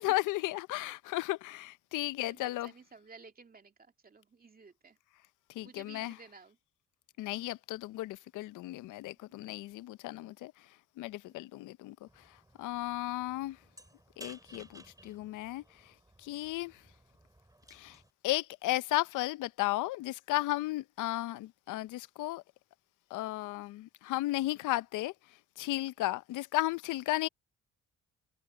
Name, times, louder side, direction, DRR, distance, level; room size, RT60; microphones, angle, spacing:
voice 1, 0.0-2.7 5.5-6.2 7.2-10.7 11.0-13.6 14.2-16.8 17.7-22.4 23.1-27.3, left 17 dB, 85° left, 0.6 m, -35 dB
voice 2, 2.1-5.0 5.6-6.6 11.3-11.5, right 4 dB, 30° right, 2.5 m, -54 dB
sound 1, 12.1-18.1, right 1 dB, 10° right, 5.6 m, -57 dB
cardioid pair, 90°, 30 cm